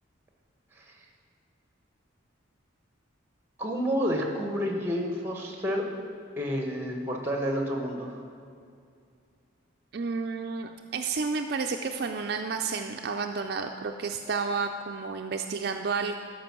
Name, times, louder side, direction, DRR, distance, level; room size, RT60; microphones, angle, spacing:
voice 1, 3.6-5.9 6.4-8.1, equal, 10° right, 1 dB, 1.2 m, -29 dB
voice 2, 9.9-16.2, right 4 dB, 50° right, 4 dB, 0.4 m, -31 dB
13.0 x 5.4 x 6.0 m, 2.4 s
head